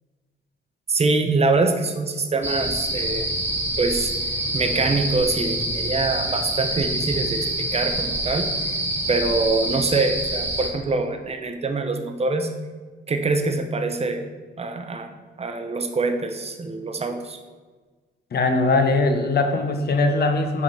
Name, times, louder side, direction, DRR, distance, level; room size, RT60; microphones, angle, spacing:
voice 1, 0.9-3.2 3.8-4.1 4.5-8.5 9.1-12.5 13.1-14.2 14.6-15.1 15.4-17.4, right 3 dB, 30° right, 6 dB, 0.8 m, -24 dB
sound 1, 2.4-10.7, right 1 dB, 10° right, 1.2 m, -26 dB
voice 2, 18.3-20.6, left 3 dB, 55° left, 5 dB, 0.9 m, -21 dB
6.1 x 3.9 x 5.6 m, 1.4 s
cardioid pair, 90°, 20 cm